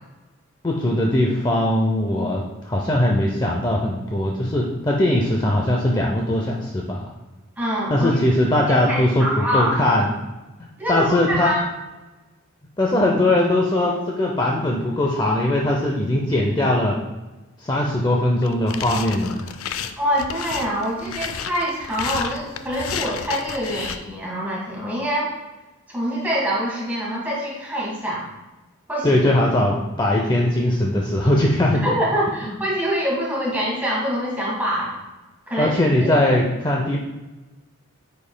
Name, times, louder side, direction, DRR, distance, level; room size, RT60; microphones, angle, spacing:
voice 1, 0.6-7.0 7.9-10.1 10.9-11.5 12.8-17.0 17.6-19.5 29.0-31.9 32.4-32.6 35.6-37.0, left 1 dB, 20° left, -1 dB, 0.5 m, -20 dB
voice 2, 7.6-8.2 8.7-9.8 10.8-11.6 20.0-25.3 25.9-28.3 28.9-29.2 31.8-34.9 35.5-36.1, equal, 10° right, -5 dB, 1.6 m, -25 dB
sound 1, 18.4-24.0, left 7 dB, 85° left, 0.4 m, -31 dB
8.5 x 5.3 x 2.2 m, 1.1 s
head